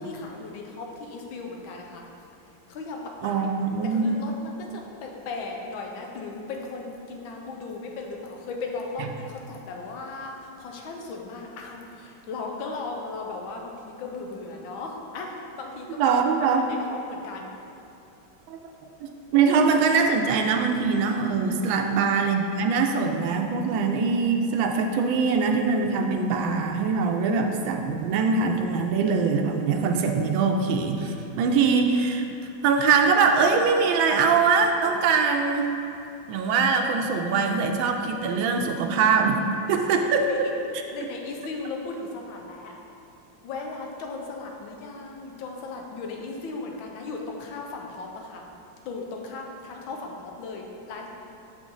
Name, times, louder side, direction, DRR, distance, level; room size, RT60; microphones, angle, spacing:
voice 1, 0.0-2.1 2.7-3.5 3.8-16.1 16.4-16.6 16.9-17.5 21.7-22.0 40.2-40.5 40.9-42.7 43.4-48.4 48.8-51.1, left 3 dB, 85° left, 1 dB, 1.5 m, -37 dB
voice 2, 3.2-4.2 16.0-16.7 18.5-18.7 19.0-32.3 32.6-35.7 36.3-39.4 39.7-40.5, right 5 dB, 85° right, 4 dB, 1.4 m, -23 dB
6.9 x 5.0 x 3.8 m, 2.7 s
omnidirectional pair, 2.1 m